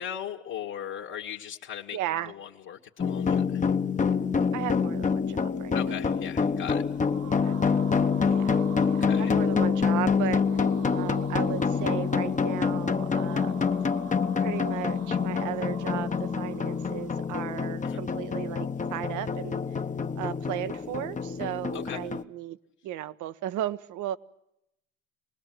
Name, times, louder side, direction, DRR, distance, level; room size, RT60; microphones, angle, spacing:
voice 1, 0.0-2.0 2.2-3.7 5.7-6.8 9.1-9.3 17.8-18.0 21.7-22.0, left 9 dB, 50° left, -1 dB, 2.1 m, -38 dB
voice 2, 1.9-2.3 4.5-6.0 7.3-7.5 8.2-8.6 8.9-10.4 10.9-13.7 14.4-19.6 20.2-22.6 22.8-24.2, right 13 dB, 55° right, 14 dB, 1.1 m, -35 dB
sound 1, 3.0-22.2, left 5 dB, 20° left, 1.1 m, -27 dB
sound 2, 6.7-17.6, right 9 dB, 80° right, 3.8 m, -48 dB
25.5 x 20.0 x 7.7 m, 0.81 s
hypercardioid pair, 65°, 36 cm